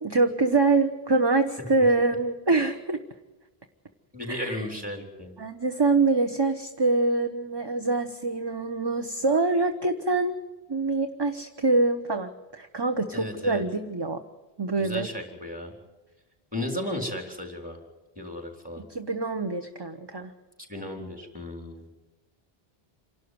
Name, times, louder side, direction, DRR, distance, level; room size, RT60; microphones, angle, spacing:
voice 1, 0.0-3.0 4.3-4.7 5.4-10.4 10.7-14.2 14.6-15.1 18.8-20.3, right 3 dB, 25° right, 7 dB, 0.9 m, -25 dB
voice 2, 4.1-5.3 13.1-13.6 14.8-15.7 16.5-17.8 18.2-18.8 20.7-21.9, left 1 dB, 10° right, 2 dB, 4.0 m, -34 dB
27.5 x 12.0 x 9.5 m, 1.2 s
omnidirectional pair, 1.0 m